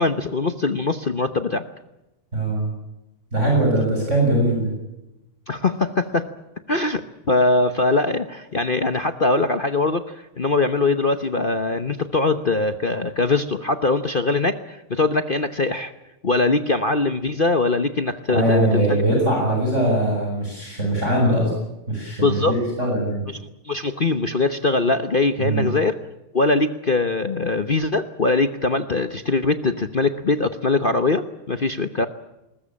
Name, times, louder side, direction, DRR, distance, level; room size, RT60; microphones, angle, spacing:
voice 1, 0.0-1.6 5.5-6.3 6.7-15.9 16.2-19.0 22.2-22.9 23.3-23.4 23.6-26.0 26.3-32.1, left 3 dB, 45° left, 10 dB, 0.7 m, -22 dB
voice 2, 2.3-2.7 3.3-4.7 18.3-21.5 21.9-23.2 25.4-25.7, right 1 dB, 30° right, -1 dB, 7.2 m, -21 dB
20.5 x 20.5 x 8.6 m, 0.95 s
omnidirectional pair, 2.3 m